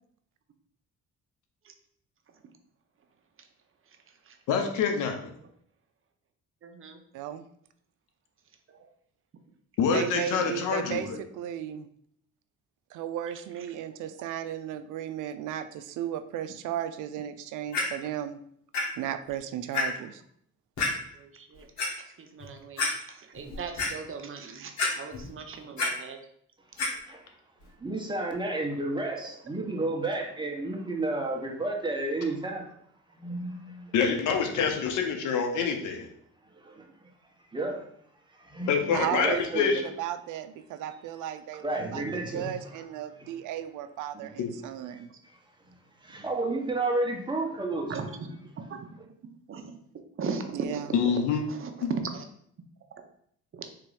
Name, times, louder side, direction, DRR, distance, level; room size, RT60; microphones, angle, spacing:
voice 1, 4.5-5.3 9.8-11.2 33.9-36.1 38.7-39.8 44.4-44.5 50.9-51.4 51.8-51.9, left 6 dB, 90° left, 4 dB, 0.8 m, -26 dB
voice 2, 6.6-7.0 8.7-8.8 10.2-10.5 21.1-21.7 21.9-26.2 47.7-48.3 48.5-48.8 49.5-49.6 50.2-50.8 51.5-52.2 53.5-53.7, right 5 dB, 45° right, 5 dB, 0.8 m, -38 dB
voice 3, 7.1-7.4 9.9-11.9 12.9-18.4 19.0-20.2 38.9-45.1 50.5-50.9, right 10 dB, 85° right, 11 dB, 0.5 m, -35 dB
Clock, 17.7-17.8 18.7-18.8 19.3-19.4 19.7-19.8 20.8-20.9 21.5-21.9 22.4-22.5 22.8-22.9 23.4-23.9 24.8-25.3 25.6-25.9 26.8-26.9 27.6-27.7, left 3 dB, 65° left, 1.6 m, -28 dB
voice 4, 27.8-32.7 33.1-33.9 36.5-36.9 37.5-37.8 38.3-39.9 41.6-42.7 43.2-43.3 44.1-44.3 44.9-45.0 46.0-48.0, right 2 dB, 15° right, 0 dB, 1.1 m, -32 dB
3.7 x 2.9 x 4.9 m, 0.67 s
cardioid pair, 90°, 30 cm